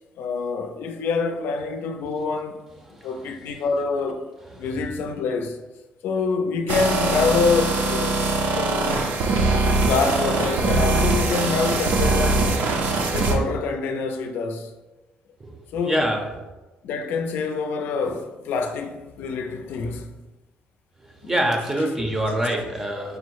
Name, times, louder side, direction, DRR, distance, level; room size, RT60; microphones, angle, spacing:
voice 1, 0.2-2.7 3.0-4.3 4.6-5.6 6.0-8.2 8.6-9.0 9.8-12.6 13.1-14.7 15.7-16.1 16.8-20.1 21.2-21.3 21.8-22.0 22.3-22.7, left 4 dB, 80° left, 0.4 m, -26 dB
sound 1, 6.7-13.4, right 3 dB, 65° right, 0.6 m, -22 dB
voice 2, 15.8-16.2 21.3-23.2, right 1 dB, 10° right, 0.6 m, -24 dB
5.0 x 2.0 x 4.6 m
cardioid pair, 145°, 3 cm